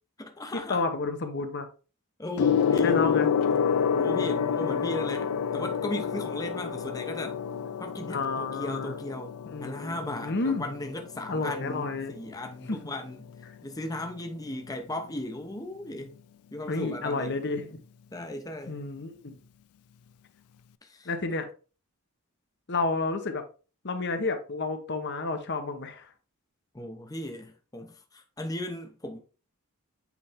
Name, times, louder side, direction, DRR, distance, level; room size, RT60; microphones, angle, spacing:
voice 1, 0.2-0.8 2.2-3.0 3.9-7.4 7.8-13.2 13.6-16.2 16.5-17.4 18.1-18.8 20.8-21.1 26.7-29.2, left 1 dB, 15° left, 0.7 m, -37 dB
voice 2, 0.7-1.7 2.8-3.3 8.1-9.0 9.5-10.6 11.3-12.1 12.7-12.8 16.7-17.8 18.7-19.4 21.0-21.5 22.7-23.4 23.8-26.1, left 3 dB, 50° left, 0.9 m, -30 dB
Gong, 2.4-12.1 13.1-13.3, left 7 dB, 85° left, 0.4 m, -28 dB
8.2 x 3.3 x 3.5 m
head